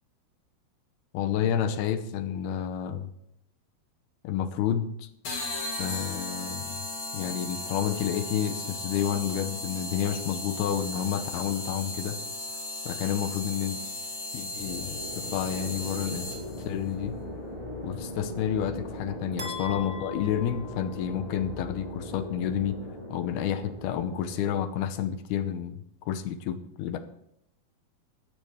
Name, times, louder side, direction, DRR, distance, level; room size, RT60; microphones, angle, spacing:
voice 1, 1.1-3.1 4.2-5.1 5.8-6.8 7.1-12.2 12.9-13.8 14.3-15.0 15.3-16.3 16.7-17.2 17.8-22.8 23.1-27.0, left 9 dB, 85° left, 10 dB, 2.8 m, -30 dB
sound 1, 5.2-16.7, left 2 dB, 40° left, 2.5 m, -36 dB
sound 2, 14.6-24.6, left 1 dB, 15° left, 2.5 m, -39 dB
sound 3, 19.4-21.5, left 5 dB, 35° right, 1.6 m, -41 dB
15.5 x 13.0 x 3.2 m, 0.76 s
omnidirectional pair, 4.5 m